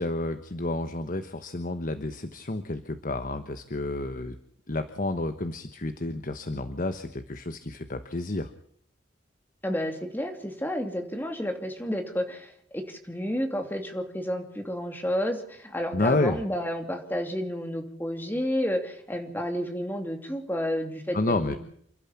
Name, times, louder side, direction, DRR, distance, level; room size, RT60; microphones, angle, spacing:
voice 1, 0.0-4.4 4.7-8.5 15.9-16.4 21.1-21.6, left 2 dB, 45° left, 9 dB, 1.1 m, -30 dB
voice 2, 9.6-21.6, equal, 10° left, 4 dB, 2.8 m, -31 dB
29.0 x 12.5 x 7.2 m, 0.66 s
head